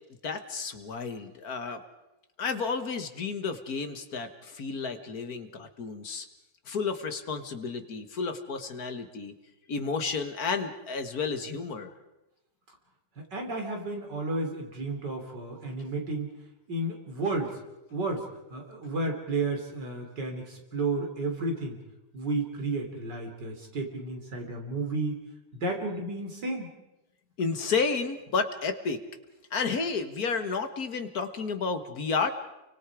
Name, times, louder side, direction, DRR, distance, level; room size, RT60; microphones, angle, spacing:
voice 1, 0.2-1.8 2.4-6.3 6.7-9.3 9.7-11.9 27.4-29.0 29.5-32.3, left 5 dB, 55° left, 8 dB, 1.9 m, -31 dB
voice 2, 13.2-16.3 16.7-17.6 17.9-21.8 22.1-25.2 25.5-26.7, right 2 dB, 65° right, 2 dB, 4.3 m, -32 dB
29.0 x 24.0 x 4.9 m, 0.96 s
omnidirectional pair, 2.0 m